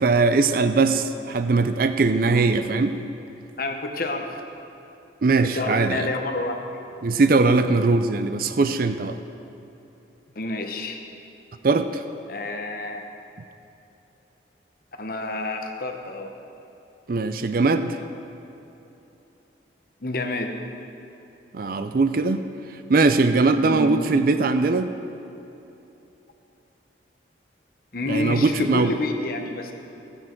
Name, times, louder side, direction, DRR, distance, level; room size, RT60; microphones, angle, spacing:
voice 1, 0.0-3.0 5.2-6.1 7.0-9.2 11.6-12.0 17.1-18.0 21.5-22.4 22.9-24.9 28.1-29.0, right 3 dB, 50° right, 9 dB, 0.4 m, -20 dB
voice 2, 3.6-4.3 5.4-6.8 10.3-11.0 12.3-13.0 15.0-16.3 20.0-20.5 23.6-24.0 27.9-29.7, left 2 dB, 50° left, 4 dB, 1.0 m, -28 dB
14.0 x 9.6 x 4.5 m, 2.9 s
head